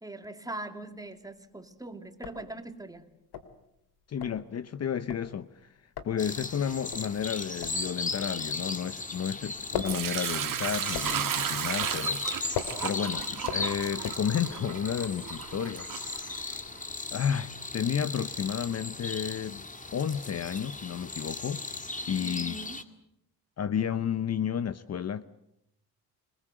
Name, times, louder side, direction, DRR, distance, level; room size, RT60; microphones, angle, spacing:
voice 1, 0.0-3.1 22.2-22.8, right 2 dB, 10° right, 2.7 m, -41 dB
sound 1, 0.8-1.4 1.7-1.8 2.1-9.1 9.4-14.7, left 8 dB, 80° left, 2.7 m, -40 dB
voice 2, 4.1-16.7 17.1-19.6 19.9-21.6 22.1-22.5 23.6-25.2, left 8 dB, 40° left, 0.9 m, -32 dB
sound 2, 6.2-22.8, left 3 dB, 20° left, 2.0 m, -37 dB
Sink (filling or washing) / Liquid, 9.9-16.8, right 9 dB, 55° right, 2.2 m, -34 dB
26.0 x 21.0 x 7.9 m
cardioid pair, 100°, 38 cm